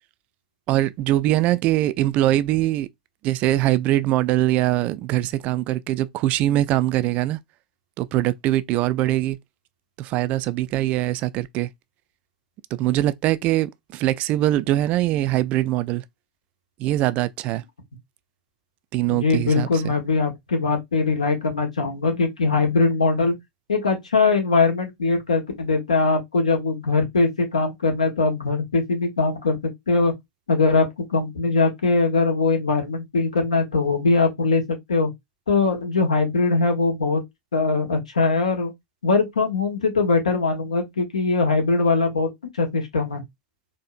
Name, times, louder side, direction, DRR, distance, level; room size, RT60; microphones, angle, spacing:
voice 1, 0.7-2.9 3.2-7.4 8.0-9.4 10.0-11.7 12.7-16.0 16.8-17.6 18.9-19.9, right 14 dB, 40° right, 0.3 m, -22 dB
voice 2, 19.1-23.4 23.7-30.1 30.5-35.1 35.5-37.2 37.5-38.7 39.0-42.3 42.6-43.2, left 3 dB, 75° left, 1.4 m, -21 dB
4.2 x 2.6 x 2.5 m
figure-of-eight pair, 90°, 4 cm